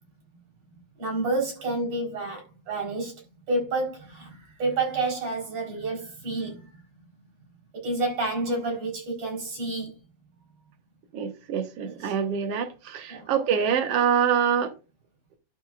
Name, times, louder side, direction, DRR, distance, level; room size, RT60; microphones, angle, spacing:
voice 1, 1.0-6.8 7.7-9.9 11.8-12.1 13.1-13.3, right 2 dB, 40° right, 5.3 m, -29 dB
voice 2, 11.1-14.7, right 8 dB, 70° right, 1.4 m, -25 dB
12.0 x 7.7 x 2.5 m
omnidirectional pair, 4.5 m